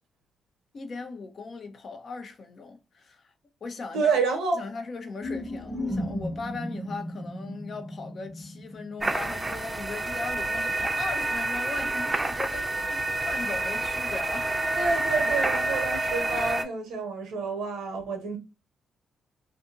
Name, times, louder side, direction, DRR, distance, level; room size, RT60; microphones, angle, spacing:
voice 1, 0.7-3.3 3.6-4.2 4.5-14.5, left 4 dB, 55° left, 0.7 m, -38 dB
voice 2, 3.9-4.6 14.8-18.4, right 4 dB, 80° right, 0.8 m, -28 dB
sound 1, 5.2-9.8, left 1 dB, 20° left, 1.0 m, -35 dB
sound 2, 9.0-16.6, right 2 dB, 25° right, 0.5 m, -28 dB
2.6 x 2.6 x 2.4 m
hypercardioid pair, 45°, 0 cm